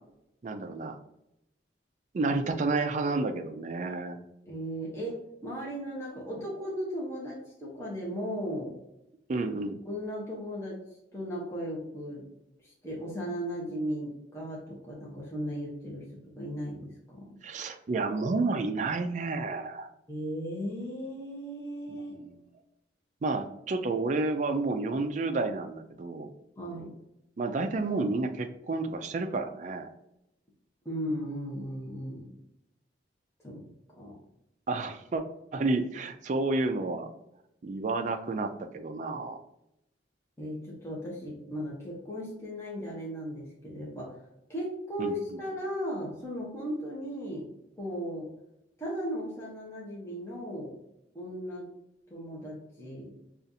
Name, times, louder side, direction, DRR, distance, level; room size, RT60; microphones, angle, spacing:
voice 1, 0.4-1.0 2.1-4.2 9.3-9.8 17.4-19.9 22.1-22.3 23.2-26.3 27.4-29.9 34.7-35.2 35.5-37.1 37.6-39.4 45.0-45.4, right 3 dB, 40° right, 7 dB, 0.3 m, -30 dB
voice 2, 4.5-8.7 9.8-10.8 11.1-12.2 12.6-16.1 16.4-17.3 20.1-22.2 26.6-26.9 30.8-32.3 33.4-33.6 34.0-34.2 40.4-44.2 44.5-47.5 47.8-48.3 48.8-50.8 51.1-51.7 52.1-53.1, equal, 15° left, -5 dB, 0.9 m, -36 dB
5.2 x 2.4 x 2.7 m, 0.85 s
head